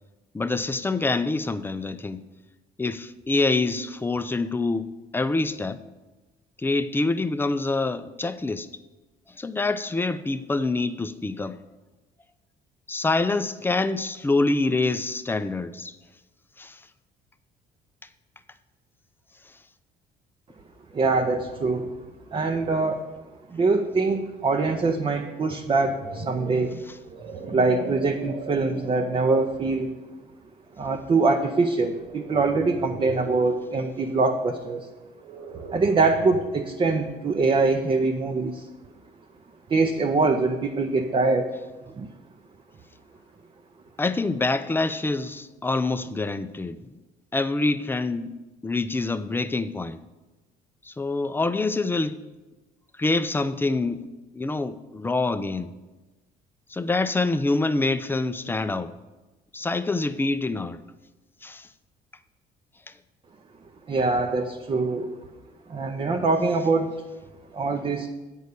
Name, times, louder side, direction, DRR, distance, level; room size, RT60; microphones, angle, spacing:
voice 1, 0.3-2.2 2.8-5.8 6.6-8.7 9.3-11.6 12.9-16.0 16.6-16.8 19.5-19.6 44.0-47.0 47.3-48.3 48.6-50.0 50.8-52.2 53.0-54.1 54.3-55.7 56.7-58.9 59.5-60.8 61.4-61.7 62.9-63.0, left 3 dB, 10° left, 0.4 m, -26 dB
voice 2, 20.9-21.9 22.3-23.1 23.5-26.8 27.4-29.9 30.8-34.9 35.7-38.7 39.7-41.5 42.0-42.1 63.9-65.1 65.7-66.9 67.5-68.1, right 3 dB, 30° right, 0.6 m, -23 dB
sound 1, 25.6-29.3 29.9-30.2 32.0-33.5 35.2-36.6, right 3 dB, 80° right, 1.4 m, -39 dB
8.0 x 5.5 x 6.5 m
cardioid pair, 110°, 17 cm